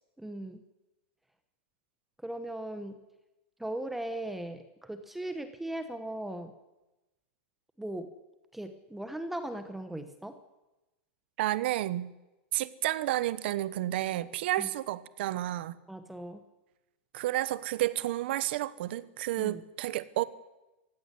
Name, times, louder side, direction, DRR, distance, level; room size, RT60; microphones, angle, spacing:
voice 1, 0.2-0.6 2.2-3.0 3.6-6.5 7.8-8.1 8.5-10.4 14.6-14.7 15.9-16.4 19.4-19.6, right 1 dB, 5° right, 9 dB, 1.1 m, -38 dB
voice 2, 11.4-12.1 12.5-15.7 17.1-20.2, right 15 dB, 60° right, 16 dB, 1.1 m, -31 dB
18.0 x 16.0 x 9.9 m, 1.0 s
supercardioid pair, 160°, 7 cm